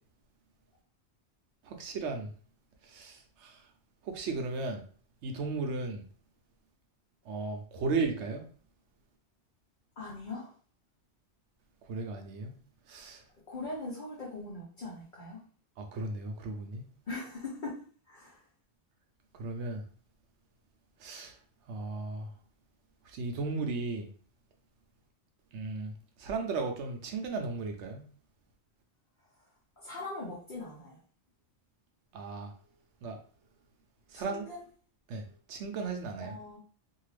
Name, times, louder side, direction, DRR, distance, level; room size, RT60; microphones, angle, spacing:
voice 1, 1.7-2.3 2.8-3.6 4.0-4.8 5.2-6.0 7.3-8.4 11.9-12.5 12.9-13.2 15.8-16.8 19.4-19.8 21.0-21.3 21.7-22.3 23.1-24.1 25.5-25.9 26.2-28.0 32.1-32.5 33.0-33.2 34.1-34.4 35.1-35.2 35.5-36.3, right 3 dB, 80° right, 0.9 m, -35 dB
voice 2, 10.0-10.5 13.5-15.4 17.1-17.7 18.1-18.4 29.8-31.0 34.1-34.6 36.2-36.6, left 2 dB, 50° left, 0.9 m, -41 dB
2.7 x 2.3 x 3.2 m
omnidirectional pair, 1.2 m